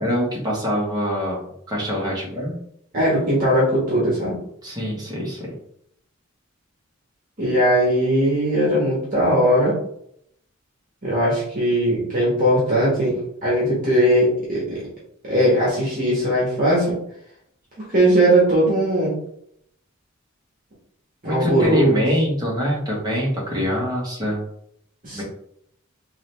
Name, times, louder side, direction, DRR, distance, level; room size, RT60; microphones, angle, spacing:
voice 1, 0.0-2.6 4.6-5.5 21.2-24.4 25.1-25.2, equal, 20° right, -4 dB, 1.3 m, -24 dB
voice 2, 2.9-4.3 7.4-9.7 11.0-14.8 15.3-16.9 17.8-19.1 21.2-22.0 25.0-25.2, right 1 dB, 40° right, -6 dB, 1.5 m, -19 dB
3.8 x 2.9 x 3.3 m, 0.71 s
head